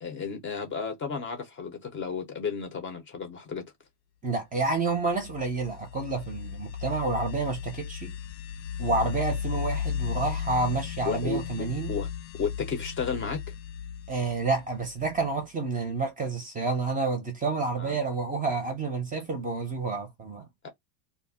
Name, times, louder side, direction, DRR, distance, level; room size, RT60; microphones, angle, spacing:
voice 1, 0.0-3.6 11.0-11.4 11.9-12.1 12.4-13.4 17.8-18.0 20.6-20.7, left 5 dB, 25° left, 0.6 m, -32 dB
voice 2, 4.2-8.1 8.8-11.9 14.1-20.5, right 3 dB, 15° right, 0.6 m, -29 dB
sound 1, 4.9-15.4, left 8 dB, 80° left, 0.6 m, -35 dB
2.4 x 2.1 x 3.5 m
supercardioid pair, 135°, 49 cm